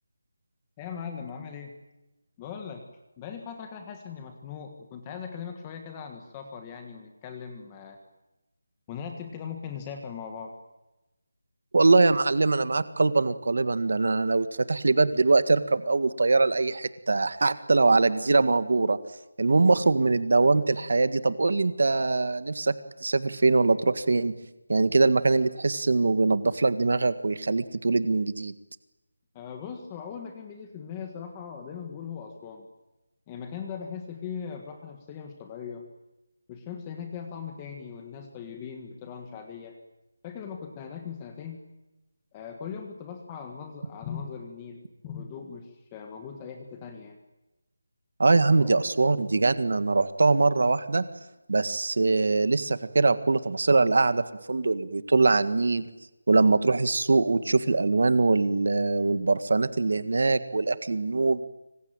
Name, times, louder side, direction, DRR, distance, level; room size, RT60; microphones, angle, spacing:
voice 1, 0.8-1.8 2.4-2.8 3.2-8.0 8.9-10.5 29.3-32.7 33.3-35.8 36.5-39.8 40.2-41.6 42.3-47.2 48.6-48.7 49.0-49.1, left 7 dB, 10° left, 5 dB, 1.5 m, -39 dB
voice 2, 11.7-19.0 19.4-22.7 23.0-24.3 24.7-28.5 48.2-51.0 51.5-55.8 56.3-61.4, right 3 dB, 50° right, 13 dB, 1.7 m, -22 dB
26.0 x 25.5 x 9.0 m, 0.99 s
figure-of-eight pair, 180°, 0 cm